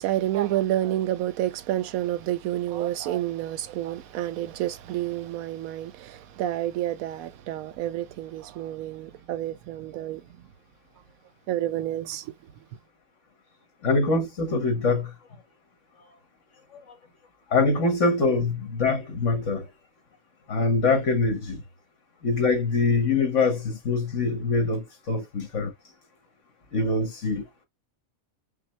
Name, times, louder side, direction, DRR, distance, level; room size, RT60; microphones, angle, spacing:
voice 1, 0.0-10.2 11.5-12.3, right 13 dB, 85° right, 1.0 m, -29 dB
voice 2, 13.8-15.1 17.5-19.7 20.5-21.6 22.2-25.7 26.7-27.6, left 3 dB, 60° left, 1.8 m, -24 dB
5.9 x 2.1 x 4.4 m
omnidirectional pair, 1.5 m